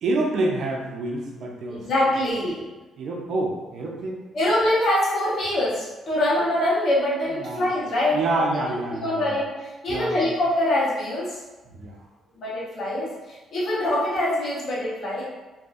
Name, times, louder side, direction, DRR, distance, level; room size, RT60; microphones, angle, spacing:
voice 1, 0.0-1.9 3.0-4.2 7.3-7.7 8.1-9.4 9.9-10.3 11.7-12.0, right 2 dB, 65° right, -1 dB, 0.5 m, -27 dB
voice 2, 1.7-2.7 4.3-8.2 8.9-11.4 12.4-15.2, left 1 dB, 60° left, -7 dB, 1.1 m, -24 dB
2.6 x 2.5 x 2.4 m, 1.2 s
cardioid pair, 90°, 0 cm